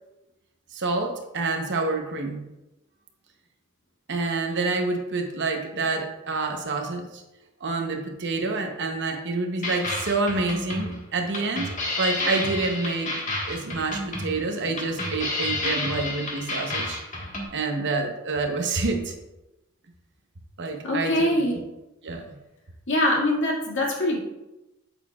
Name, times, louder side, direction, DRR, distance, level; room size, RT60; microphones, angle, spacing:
voice 1, 0.7-2.4 4.1-7.2 7.6-13.1 13.5-17.0 17.5-19.1 20.6-21.4 22.0-22.2, right 3 dB, 55° right, 3 dB, 1.0 m, -28 dB
sound 1, 9.6-17.4, left 2 dB, 35° left, 1.7 m, -30 dB
voice 2, 20.8-21.6 22.9-24.2, left 1 dB, 60° left, -2 dB, 2.0 m, -23 dB
8.3 x 8.2 x 2.4 m, 0.97 s
head